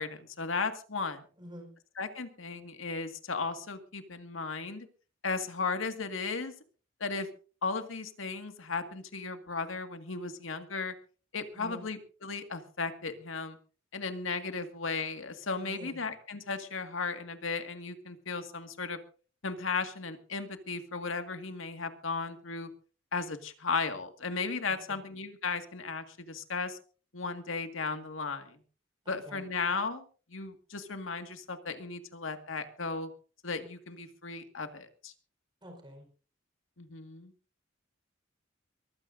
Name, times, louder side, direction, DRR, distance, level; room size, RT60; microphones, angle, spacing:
voice 1, 0.0-1.2 2.0-4.9 5.2-6.5 7.0-7.3 7.6-10.9 11.3-13.6 13.9-19.0 19.4-22.7 23.1-26.8 27.1-28.6 29.1-33.1 33.4-35.1 36.8-37.3, left 4 dB, 85° left, 7 dB, 1.9 m, -35 dB
voice 2, 1.4-1.7 11.5-11.8 15.6-16.0 24.9-25.0 29.0-29.4 35.6-36.1, equal, 25° right, 3 dB, 4.5 m, -47 dB
23.5 x 15.0 x 2.6 m, 0.37 s
head